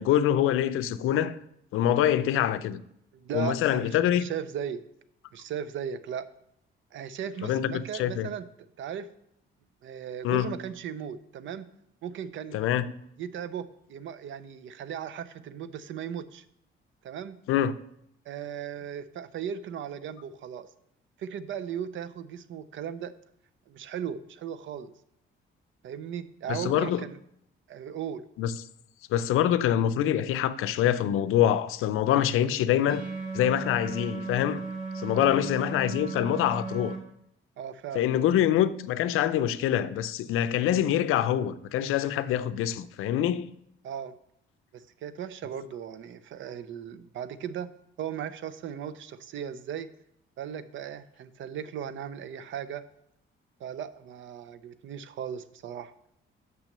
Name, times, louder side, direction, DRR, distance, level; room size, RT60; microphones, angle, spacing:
voice 1, 0.0-1.4 1.7-2.8 3.3-4.3 7.4-8.3 10.2-10.5 12.5-12.8 17.5-17.8 26.5-27.0 28.4-28.5 29.1-33.0 33.3-34.6 35.0-36.9 37.9-43.5, left 11 dB, 90° left, 0.5 m, -25 dB
voice 2, 3.1-4.8 5.3-6.3 6.9-8.4 8.8-9.1 9.8-11.7 12.0-12.6 13.2-16.4 17.0-17.4 18.3-20.7 21.2-23.1 23.7-24.9 25.8-27.2 27.7-28.2 35.1-35.4 37.6-38.1 43.8-44.1 44.7-47.7 48.0-49.9 50.4-52.8 53.6-55.9, right 8 dB, 70° right, 0.6 m, -37 dB
sound 1, 32.9-37.0, right 4 dB, 35° right, 2.8 m, -36 dB
6.2 x 5.9 x 6.7 m
cardioid pair, 135°, 21 cm